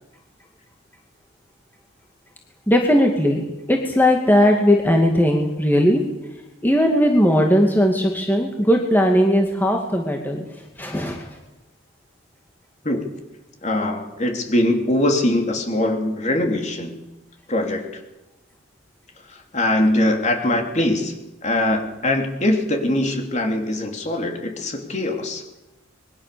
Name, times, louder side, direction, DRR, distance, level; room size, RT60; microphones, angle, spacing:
voice 1, 2.7-6.0 6.6-10.4 10.8-11.3, equal, 10° left, 1 dB, 2.3 m, -18 dB
voice 2, 13.6-17.0 17.5-17.8 19.3-21.2 21.4-25.5, left 1 dB, 35° left, 3 dB, 3.3 m, -22 dB
26.5 x 22.0 x 7.0 m, 1.0 s
head